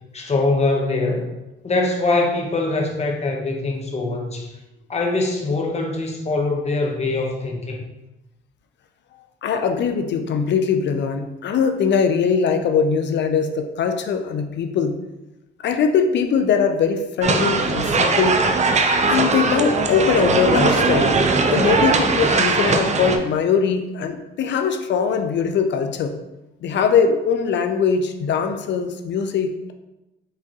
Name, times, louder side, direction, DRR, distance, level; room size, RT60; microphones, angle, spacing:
voice 1, 0.1-1.3 1.6-4.5 4.9-7.8, left 2 dB, 35° left, 1 dB, 0.9 m, -23 dB
voice 2, 9.4-15.0 15.6-18.4 19.1-21.2 21.5-26.2 26.6-29.7, left 6 dB, 65° left, 7 dB, 0.5 m, -21 dB
sound 1, 17.2-23.2, right 3 dB, 35° right, 0.5 m, -19 dB
4.8 x 3.5 x 2.9 m, 0.99 s
cardioid pair, 90°, 20 cm